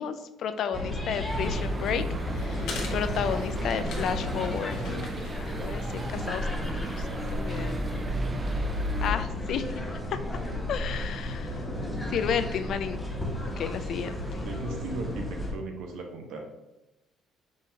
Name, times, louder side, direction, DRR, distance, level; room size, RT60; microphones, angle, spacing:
voice 1, 0.0-4.8 5.4-7.8 9.0-9.8 10.7-11.7 12.1-13.0 13.6-14.3, left 7 dB, 60° left, 10 dB, 0.3 m, -32 dB
City Park Portlan Oregon Airplane (Noise Growingin BG), 0.7-15.5, left 1 dB, 5° left, 0.9 m, -33 dB
sound 1, 1.3-9.1, right 1 dB, 25° right, 0.3 m, -34 dB
sound 2, 2.6-7.6, left 4 dB, 80° left, 1.0 m, -44 dB
voice 2, 14.4-16.4, right 3 dB, 85° right, 2 dB, 0.9 m, -37 dB
5.3 x 3.5 x 2.8 m, 0.95 s
cardioid pair, 145°, 0 cm